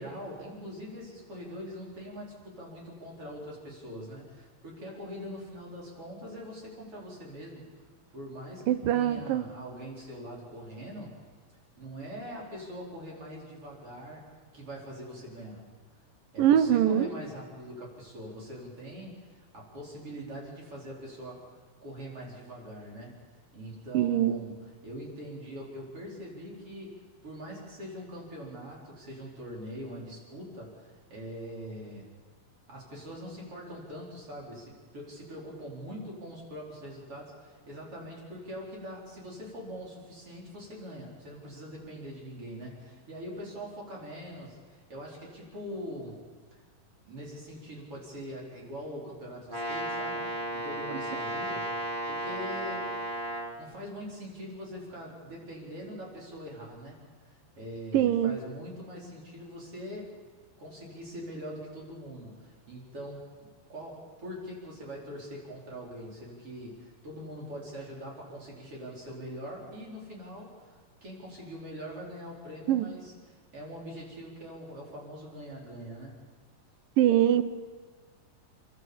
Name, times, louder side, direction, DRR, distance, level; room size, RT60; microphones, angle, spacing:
voice 1, 0.0-7.9 8.1-11.2 11.8-14.2 14.5-15.6 16.3-21.5 21.8-23.2 23.5-24.6 24.8-32.1 32.7-46.2 46.5-46.6 47.0-51.7 52.1-53.0 53.3-60.1 60.6-63.3 63.7-76.2, equal, 40° right, -4 dB, 5.2 m, -43 dB
voice 2, 8.7-9.4 16.4-17.1 23.9-24.4 57.9-58.4 72.7-72.9 77.0-77.4, right 11 dB, 75° right, 10 dB, 2.5 m, -23 dB
Brass instrument, 49.5-53.6, right 1 dB, 15° right, 2.9 m, -34 dB
30.0 x 12.5 x 7.1 m, 1.5 s
omnidirectional pair, 4.1 m